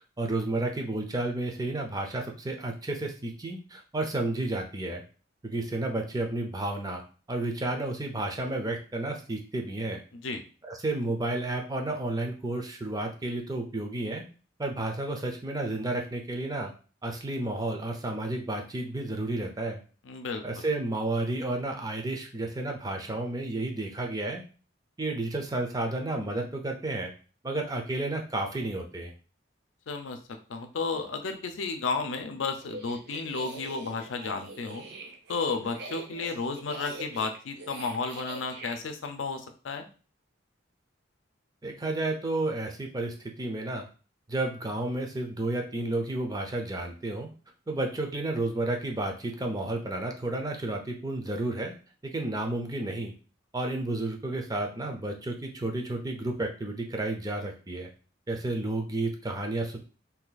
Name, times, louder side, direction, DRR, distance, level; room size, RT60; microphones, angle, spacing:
voice 1, 0.2-5.0 5.4-7.0 7.3-10.0 10.6-14.2 14.6-16.7 17.0-19.8 20.4-24.4 25.0-27.1 27.4-29.1 41.6-43.9 44.3-47.3 47.7-51.7 52.0-53.1 53.5-57.9 58.3-59.8, right 2 dB, 20° right, 2 dB, 0.5 m, -31 dB
voice 2, 20.1-20.6 29.9-30.2 30.5-34.8 35.3-39.9, left 4 dB, 85° left, 6 dB, 0.5 m, -33 dB
sound 1, 32.6-38.8, right 2 dB, 60° right, 0.7 m, -43 dB
2.7 x 2.4 x 3.9 m, 0.37 s
head